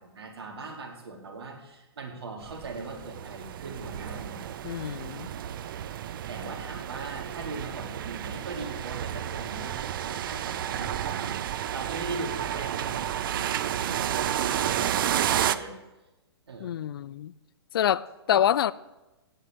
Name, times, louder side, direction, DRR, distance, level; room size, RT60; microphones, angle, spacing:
voice 1, 0.0-4.4 6.3-15.7 16.5-16.7 18.3-18.4, right 3 dB, 70° right, 4.0 m, -40 dB
sound 1, 2.4-15.6, right 10 dB, 55° right, 0.8 m, -31 dB
voice 2, 4.6-5.3 16.6-17.3 17.7-18.7, left 10 dB, 60° left, 0.6 m, -26 dB
16.5 x 6.5 x 9.1 m
hypercardioid pair, 125°, 14 cm